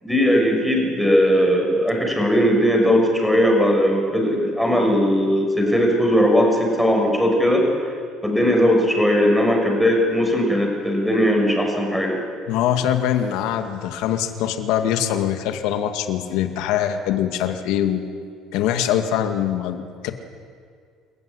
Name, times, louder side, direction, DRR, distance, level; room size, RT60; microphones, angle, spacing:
voice 1, 0.0-7.7 8.2-12.2, equal, ahead, 1 dB, 5.9 m, -18 dB
voice 2, 12.5-18.0 18.5-20.1, left 10 dB, 80° left, 7 dB, 2.1 m, -23 dB
28.0 x 15.0 x 9.9 m, 2.1 s
cardioid pair, 130°, 0 cm